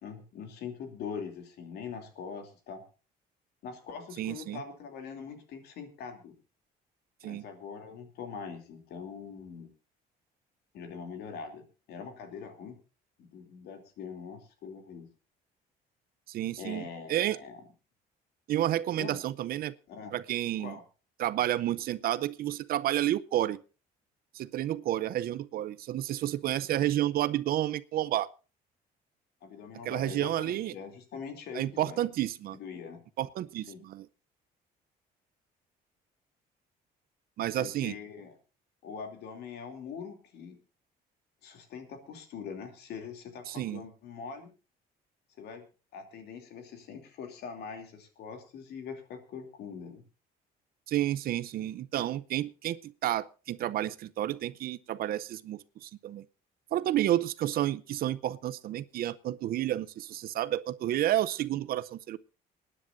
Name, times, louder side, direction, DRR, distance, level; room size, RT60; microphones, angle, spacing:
voice 1, 0.0-2.8 3.6-6.3 7.2-9.7 10.7-12.8 13.2-15.1 16.6-17.6 19.0-19.2 19.9-20.2 20.6-20.8 29.4-32.0 32.5-33.0 33.7-33.8 37.6-38.3 38.8-40.6 41.4-44.5 45.4-45.6 45.9-50.0, left 6 dB, 75° left, 2.9 m, -43 dB
voice 2, 4.2-4.6 7.2-7.4 16.3-17.4 18.5-19.7 20.1-20.8 21.2-23.6 24.3-28.3 29.8-30.7 31.5-32.6 33.2-34.1 37.4-37.9 43.5-43.8 50.9-56.3 56.7-62.2, right 13 dB, 65° right, 0.6 m, -30 dB
27.0 x 10.0 x 2.6 m
cardioid pair, 110°, 17 cm